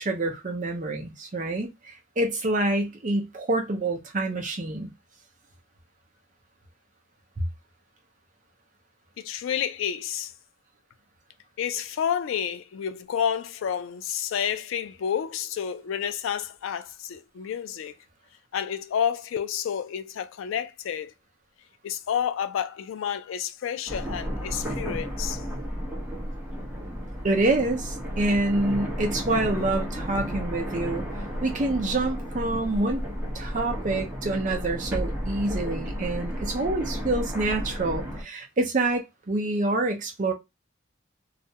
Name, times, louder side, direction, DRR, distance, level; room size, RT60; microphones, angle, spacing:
voice 1, 0.0-4.9 27.2-31.1 31.4-33.0 33.3-40.3, right 2 dB, 40° right, 0.5 m, -27 dB
voice 2, 9.2-10.3 11.6-18.0 18.5-21.1 21.8-25.4, left 8 dB, 80° left, 0.3 m, -30 dB
sound 1, 23.9-38.2, equal, 10° right, 0.8 m, -32 dB
2.4 x 2.1 x 2.7 m
head